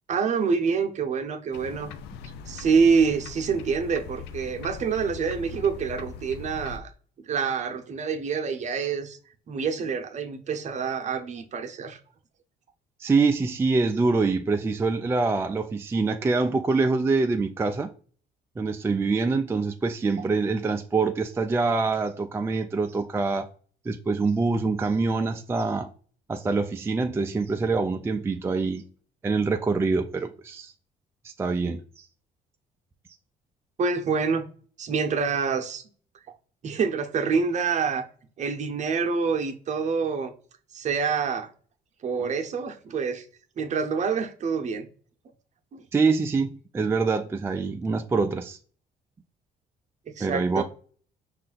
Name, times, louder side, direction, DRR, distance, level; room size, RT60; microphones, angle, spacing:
voice 1, 0.1-1.9 2.5-6.9 7.3-9.2 9.5-12.0 33.8-34.4 34.8-35.8 36.6-38.1 38.4-40.3 40.7-41.5 42.0-43.2 43.6-44.9 45.7-45.8 50.2-50.6, right 5 dB, 45° right, 0.8 m, -26 dB
sound 1, 1.5-6.8, left 5 dB, 85° left, 0.5 m, -41 dB
voice 2, 13.0-17.9 18.6-23.5 23.9-25.9 26.3-28.8 29.2-30.7 31.2-32.1 45.9-48.6 50.2-50.6, right 4 dB, 15° right, 0.3 m, -25 dB
5.4 x 2.5 x 3.8 m
cardioid pair, 110°, 17 cm